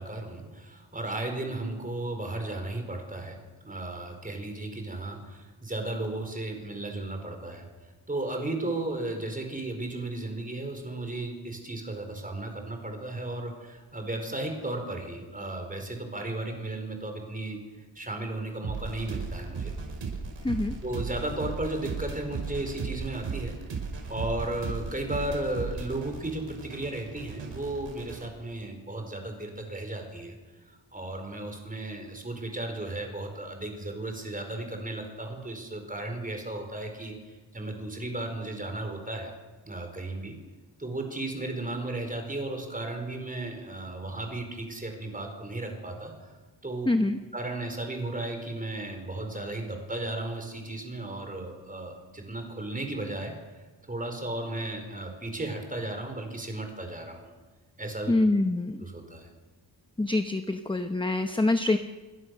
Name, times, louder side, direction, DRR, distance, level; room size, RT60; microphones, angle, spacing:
voice 1, 0.0-3.4 3.6-7.6 8.1-17.6 17.9-19.7 20.8-23.5 24.1-30.3 30.9-39.3 39.6-40.3 40.8-46.3 46.6-46.9 47.3-53.3 53.9-57.3 57.8-58.1 58.8-59.3, right 2 dB, 20° right, 4 dB, 4.7 m, -35 dB
sound 1, 18.6-28.3, right 4 dB, 85° right, 5.6 m, -36 dB
voice 2, 46.9-47.2 58.1-58.8 60.0-61.8, left 2 dB, 10° left, 7 dB, 0.9 m, -25 dB
28.5 x 23.0 x 6.6 m, 1.3 s
wide cardioid pair, 180°, 44 cm